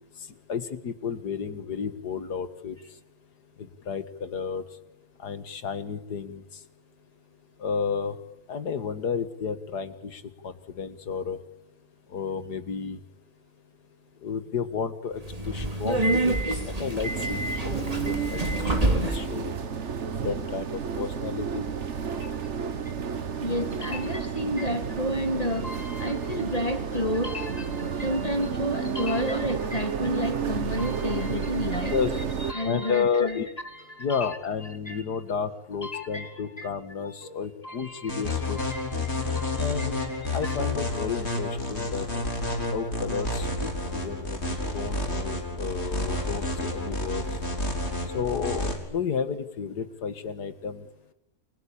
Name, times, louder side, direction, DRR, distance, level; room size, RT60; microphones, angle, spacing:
voice 1, 0.5-2.8 3.6-4.6 5.2-6.4 7.6-8.2 8.5-11.4 12.1-13.0 14.2-17.8 18.0-19.5 20.2-21.7 31.9-32.1 32.6-33.5 34.0-38.6 39.6-42.1 42.7-47.2 48.1-50.9, left 6 dB, 85° left, 12 dB, 2.3 m, -32 dB
Subway metro underground, 15.2-19.4, right 1 dB, 20° right, 3.5 m, -27 dB
sound 1, 17.0-32.5, right 6 dB, 50° right, 1.5 m, -31 dB
voice 2, 23.4-31.9 32.5-33.4 33.9-34.4 34.9-35.0 35.8-36.3 36.6-36.7 37.0-37.3 37.6-38.2 38.6-40.5, equal, 25° left, 6 dB, 3.0 m, -31 dB
sound 2, 38.1-48.8, left 2 dB, 40° left, 4.6 m, -30 dB
29.5 x 22.0 x 8.7 m, 0.83 s
omnidirectional pair, 1.7 m